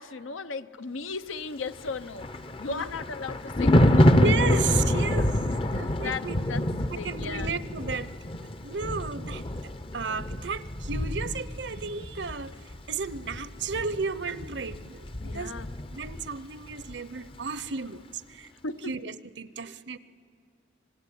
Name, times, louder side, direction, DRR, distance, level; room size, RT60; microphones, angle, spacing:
voice 1, 0.0-2.3 2.6-4.2 5.8-6.6 7.0-7.5 15.2-15.7 18.6-18.9, left 4 dB, 90° left, 12 dB, 0.8 m, -36 dB
Thunder, 1.8-16.4 16.7-16.9, left 1 dB, 25° left, 0.6 m, -27 dB
voice 2, 4.2-5.4 5.7-6.4 6.9-8.1 8.6-15.5 15.9-18.5 18.9-20.0, right 5 dB, 60° right, 15 dB, 0.7 m, -34 dB
26.0 x 19.5 x 10.0 m, 2.4 s
head